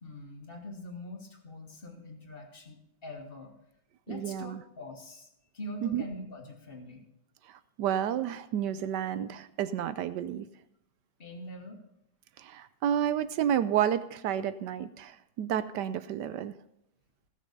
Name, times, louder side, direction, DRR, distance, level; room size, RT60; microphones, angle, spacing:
voice 1, 0.0-3.5 4.1-5.3 5.5-7.0 11.2-11.8, left 1 dB, 30° left, 3 dB, 1.8 m, -43 dB
voice 2, 4.1-4.6 5.8-6.0 7.5-10.5 12.4-16.5, right 10 dB, 75° right, 13 dB, 1.1 m, -31 dB
16.5 x 6.5 x 5.3 m, 0.80 s
omnidirectional pair, 2.1 m